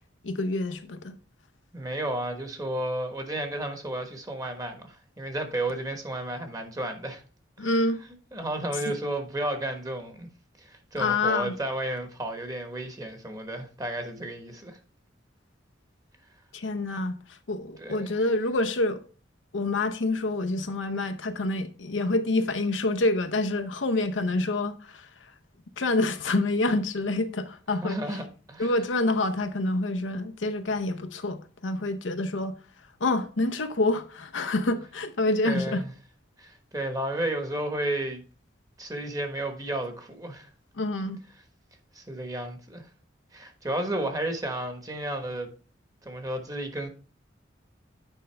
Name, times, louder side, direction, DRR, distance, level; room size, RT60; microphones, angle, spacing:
voice 1, 0.2-1.2 7.6-8.0 8.9-9.0 11.0-11.6 16.5-19.0 19.5-25.3 25.8-28.0 28.6-32.5 33.0-35.8 40.8-41.2, left 2 dB, 85° left, 0.8 m, -27 dB
voice 2, 1.7-7.2 7.6-7.8 8.3-10.3 10.6-14.8 17.8-18.1 27.8-28.7 35.4-35.9 36.4-38.2 38.8-40.5 41.9-42.9 43.3-45.5 46.0-46.9, right 1 dB, 20° right, 1.2 m, -32 dB
9.1 x 5.3 x 3.3 m
head